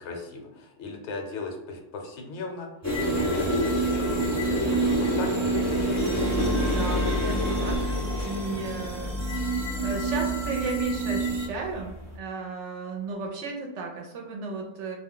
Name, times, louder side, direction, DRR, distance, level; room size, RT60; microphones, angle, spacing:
voice 1, 0.0-2.7 3.0-5.9, left 3 dB, 70° left, 2 dB, 0.9 m, -37 dB
sound 1, 2.8-12.2, left 1 dB, 25° left, 0.3 m, -30 dB
sound 2, 2.8-11.5, right 3 dB, 30° right, 0.6 m, -29 dB
voice 2, 6.6-7.9 8.2-15.0, right 3 dB, 70° right, 0 dB, 0.8 m, -35 dB
2.3 x 2.1 x 3.7 m, 0.90 s
omnidirectional pair, 1.3 m